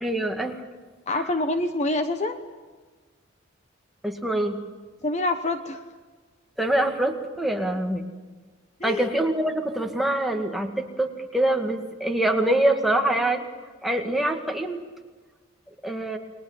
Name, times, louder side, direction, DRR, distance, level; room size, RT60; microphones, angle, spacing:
voice 1, 0.0-0.6 1.1-1.2 4.0-4.6 6.6-8.0 8.8-13.5 13.8-14.8 15.8-16.2, right 1 dB, ahead, 2 dB, 2.0 m, -25 dB
voice 2, 1.1-2.4 5.0-5.8 8.8-9.1, left 2 dB, 35° left, 8 dB, 1.1 m, -26 dB
29.5 x 21.5 x 7.4 m, 1.4 s
head